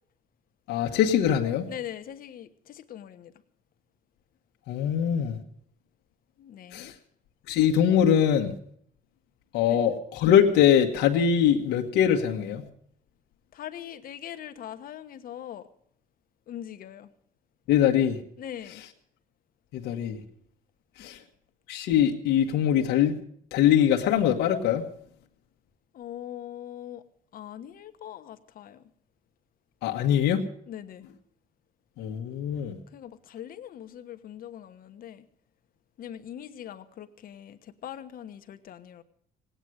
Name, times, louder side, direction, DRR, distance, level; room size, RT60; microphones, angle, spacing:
voice 1, 0.7-1.7 4.7-5.4 6.7-6.9 7.5-8.5 9.5-12.7 17.7-18.2 19.7-20.2 21.0-21.2 21.7-23.2 23.5-24.8 29.8-30.4 32.0-32.8, left 9 dB, 80° left, 2 dB, 1.5 m, -23 dB
voice 2, 1.7-3.3 6.4-6.9 9.6-9.8 13.5-15.7 16.5-17.1 18.4-18.8 21.0-21.1 25.9-27.0 27.3-28.8 30.7-31.1 32.9-35.3 36.0-39.0, left 10 dB, 60° left, 10 dB, 1.2 m, -41 dB
18.0 x 9.1 x 7.9 m, 0.65 s
cardioid pair, 110°, 17 cm